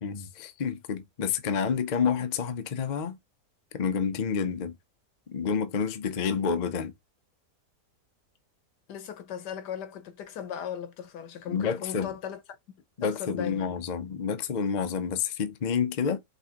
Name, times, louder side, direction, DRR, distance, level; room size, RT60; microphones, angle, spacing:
voice 1, 0.0-3.2 3.7-4.7 5.3-6.9 11.5-12.1 13.0-16.2, left 6 dB, 55° left, 0.4 m, -29 dB
voice 2, 8.9-12.4 13.0-13.8, left 8 dB, 85° left, 1.5 m, -37 dB
5.3 x 3.3 x 2.9 m
omnidirectional pair, 1.8 m